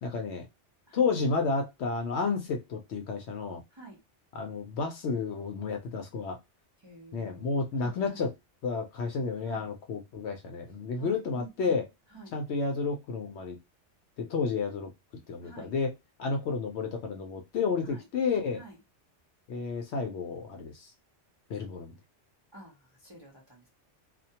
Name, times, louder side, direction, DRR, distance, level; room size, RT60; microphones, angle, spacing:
voice 1, 0.0-0.4 0.9-3.6 4.3-6.4 7.1-8.3 8.6-11.9 12.3-13.6 14.2-14.9 15.3-15.9 16.2-18.6 19.5-20.9 21.5-22.0, left 4 dB, 70° left, 0.8 m, -31 dB
voice 2, 6.8-8.3 9.4-9.6 11.0-11.7 12.1-12.4 15.4-15.7 17.8-18.0 18.6-18.8 22.5-23.7, right 2 dB, 30° right, 0.6 m, -50 dB
2.3 x 2.1 x 2.7 m
omnidirectional pair, 1.2 m